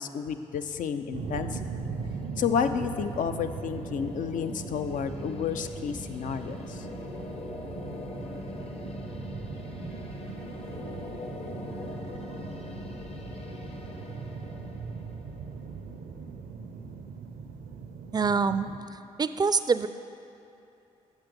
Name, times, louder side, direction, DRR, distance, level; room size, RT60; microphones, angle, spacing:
voice 1, 0.0-1.6 2.4-6.9, left 7 dB, 65° left, 9 dB, 0.5 m, -31 dB
sound 1, 1.0-16.1, left 2 dB, 45° left, 0.9 m, -42 dB
sound 2, 1.1-18.8, right 5 dB, 80° right, 0.5 m, -40 dB
voice 2, 18.1-18.7 19.2-19.9, right 5 dB, 30° right, 12 dB, 0.4 m, -24 dB
7.3 x 6.0 x 5.2 m, 2.8 s
supercardioid pair, 45°, 14 cm